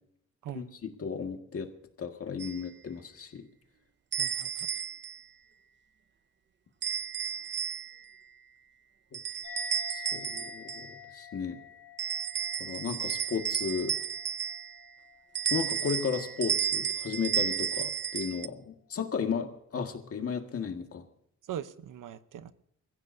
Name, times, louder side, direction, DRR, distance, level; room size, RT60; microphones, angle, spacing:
voice 1, 0.5-1.7 2.0-3.5 9.1-9.2 9.9-11.6 12.6-13.9 15.5-21.0, left 6 dB, 45° left, 1.8 m, -34 dB
sound 1, 2.4-2.6 4.1-5.2 6.8-8.1 9.1-10.9 12.0-14.9 15.4-18.5, right 8 dB, 35° right, 0.5 m, -32 dB
voice 2, 4.2-4.7 21.5-22.5, right 10 dB, 85° right, 0.9 m, -41 dB
sound 2, 9.4-16.3, left 7 dB, 85° left, 2.5 m, -48 dB
29.0 x 15.0 x 2.7 m
wide cardioid pair, 155°, 31 cm